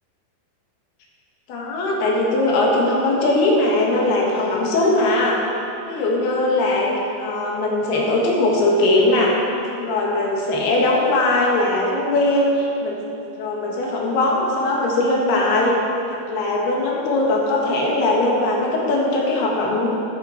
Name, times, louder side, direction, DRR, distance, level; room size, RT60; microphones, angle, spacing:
voice 1, 1.5-5.4 5.9-6.9 7.2-9.4 9.7-13.0 13.4-15.8 16.1-20.0, left 2 dB, 70° left, -2 dB, 3.5 m, -20 dB
12.0 x 10.5 x 4.4 m, 2.7 s
omnidirectional pair, 4.8 m